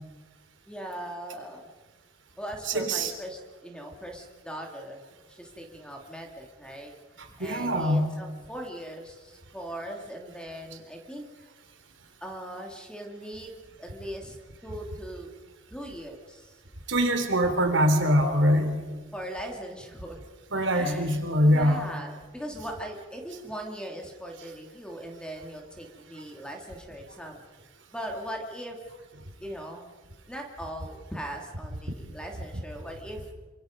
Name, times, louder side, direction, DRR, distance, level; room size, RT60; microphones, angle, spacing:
voice 1, 0.7-1.7 2.4-5.0 5.3-6.9 7.4-11.2 12.2-13.5 13.8-15.3 15.7-16.6 19.1-20.2 20.7-21.2 21.4-27.4 27.9-28.8 29.4-29.9 30.3-33.3, equal, 5° left, 1 dB, 2.8 m, -39 dB
voice 2, 2.7-3.1 7.4-8.1 16.9-18.8 20.5-21.9, equal, 75° right, 5 dB, 3.6 m, -23 dB
27.0 x 25.5 x 5.3 m, 1.3 s
head